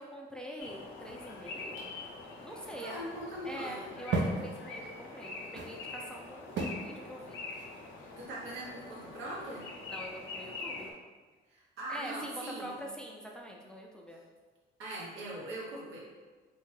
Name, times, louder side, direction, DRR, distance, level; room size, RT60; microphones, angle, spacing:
voice 1, 0.0-1.9 2.4-3.0 3.4-7.4 9.9-10.9 11.9-14.2, equal, 5° left, -1 dB, 0.3 m, -44 dB
sound 1, 0.6-10.9, left 3 dB, 75° left, 0.5 m, -44 dB
sound 2, 0.9-8.6, right 3 dB, 65° right, 0.5 m, -38 dB
voice 2, 2.8-4.0 8.2-9.7 11.5-12.8 14.8-16.0, right 1 dB, 90° right, -4 dB, 0.8 m, -41 dB
2.8 x 2.2 x 3.1 m, 1.4 s
cardioid pair, 90°, 20 cm